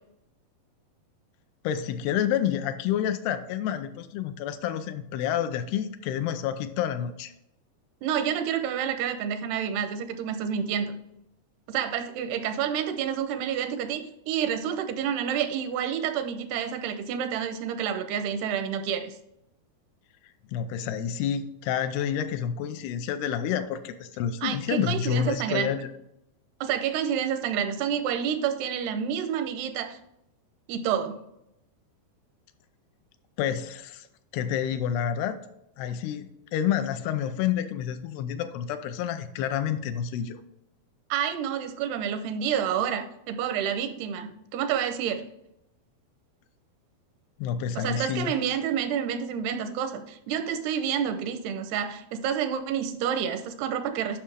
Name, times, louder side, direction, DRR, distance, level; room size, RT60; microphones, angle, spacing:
voice 1, 1.6-7.3 20.5-25.9 33.4-34.1 34.3-35.4 35.8-40.4 47.4-48.3, left 9 dB, 85° left, 10 dB, 2.6 m, -29 dB
voice 2, 8.0-11.0 11.7-14.0 14.3-19.1 24.4-25.8 26.6-30.0 30.7-31.2 41.1-45.3 47.8-54.2, right 8 dB, 85° right, 8 dB, 2.8 m, -29 dB
10.0 x 5.7 x 3.4 m, 0.83 s
omnidirectional pair, 4.5 m